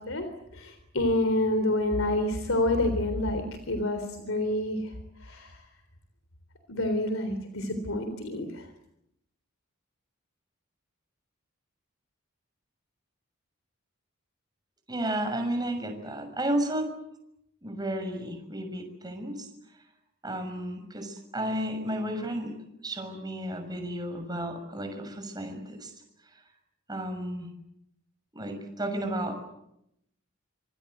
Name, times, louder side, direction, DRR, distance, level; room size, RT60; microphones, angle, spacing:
voice 1, 0.0-5.7 6.7-8.7, left 1 dB, 75° left, 8 dB, 3.6 m, -28 dB
voice 2, 14.9-16.9 17.6-19.4 20.2-22.5 22.8-25.9 26.9-27.5 28.3-29.3, right 1 dB, 20° right, 5 dB, 6.4 m, -32 dB
26.5 x 24.5 x 8.0 m, 0.80 s
head